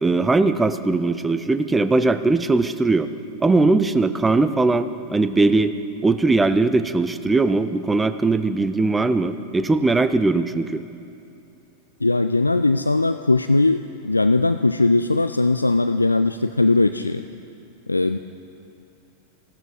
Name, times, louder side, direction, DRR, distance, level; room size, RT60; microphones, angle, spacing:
voice 1, 0.0-3.1 3.4-5.7 6.0-10.8, right 3 dB, 10° right, 11 dB, 0.6 m, -20 dB
voice 2, 12.0-17.2 17.9-18.2, left 2 dB, 80° left, 9 dB, 0.3 m, -19 dB
16.0 x 12.5 x 5.1 m, 2.7 s
figure-of-eight pair, 90°, 0 cm